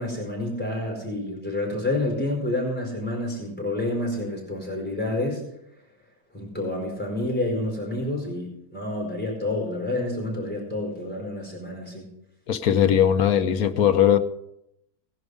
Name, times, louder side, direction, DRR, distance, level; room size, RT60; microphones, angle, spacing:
voice 1, 0.0-5.4 6.3-12.0, left 1 dB, 5° left, 4.6 m, -29 dB
voice 2, 12.5-14.2, left 9 dB, 70° left, 1.2 m, -19 dB
18.5 x 10.5 x 4.8 m
omnidirectional pair, 1.7 m